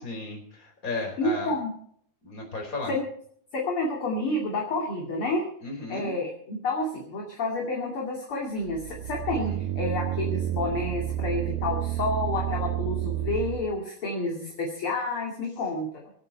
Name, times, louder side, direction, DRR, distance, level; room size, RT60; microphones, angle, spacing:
voice 1, 0.0-1.6 2.2-3.0 5.6-6.1 9.3-9.6, left 2 dB, 20° left, 1 dB, 4.6 m, -35 dB
voice 2, 0.9-1.7 2.9-3.0 3.5-5.4 5.9-16.0, left 2 dB, 35° left, -1 dB, 2.9 m, -29 dB
sound 1, 8.6-13.7, right 13 dB, 80° right, 2.3 m, -30 dB
25.5 x 8.9 x 4.5 m, 0.63 s
omnidirectional pair, 4.7 m